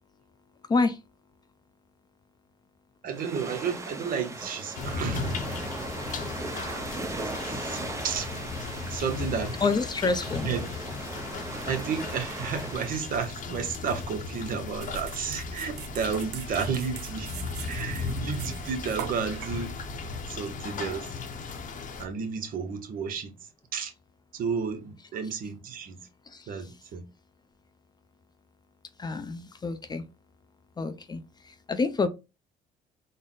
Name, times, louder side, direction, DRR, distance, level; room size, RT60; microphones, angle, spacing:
voice 1, 3.0-5.4 7.1-8.3 8.9-9.6 10.4-10.7 11.7-17.3 17.6-19.7 20.3-21.1 22.0-23.3 23.7-23.9 24.3-26.0 26.5-27.0, right 6 dB, 55° right, 0.9 m, -32 dB
sound 1, 3.1-13.1, right 2 dB, 15° right, 0.7 m, -38 dB
sound 2, 4.8-22.1, left 4 dB, 50° left, 0.8 m, -36 dB
voice 2, 9.6-10.4 29.0-30.1 30.8-31.2 31.7-32.1, left 4 dB, 25° left, 0.4 m, -27 dB
sound 3, 14.8-20.3, right 8 dB, 85° right, 0.6 m, -41 dB
4.0 x 2.0 x 3.8 m
cardioid pair, 110°, 17 cm